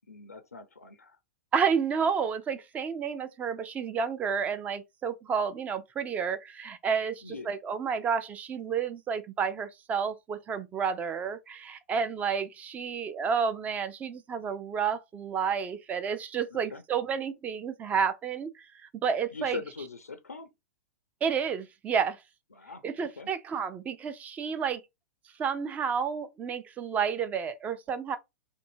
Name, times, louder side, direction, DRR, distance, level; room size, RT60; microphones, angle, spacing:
voice 1, 0.1-1.2 7.2-7.5 16.5-16.8 19.3-20.5 22.5-23.3, left 4 dB, 80° left, 0.4 m, -42 dB
voice 2, 1.5-19.6 21.2-22.2 22.8-24.8 25.4-28.2, right 6 dB, 20° right, 0.3 m, -30 dB
2.6 x 2.6 x 2.6 m
figure-of-eight pair, 105°, 8 cm